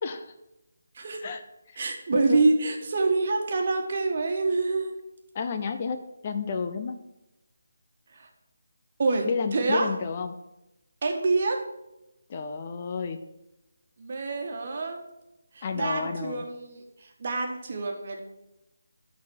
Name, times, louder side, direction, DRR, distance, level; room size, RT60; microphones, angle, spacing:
voice 1, 0.0-0.3 1.2-1.4 2.1-2.4 5.3-7.0 9.3-10.4 12.3-13.2 15.6-16.4, left 5 dB, 35° left, 7 dB, 0.6 m, -31 dB
voice 2, 1.8-4.9 8.1-8.3 9.0-9.9 11.0-11.6 14.0-15.0 15.5-18.2, right 3 dB, 45° right, 2 dB, 1.5 m, -26 dB
11.0 x 4.1 x 5.9 m, 0.93 s
figure-of-eight pair, 155°, 0 cm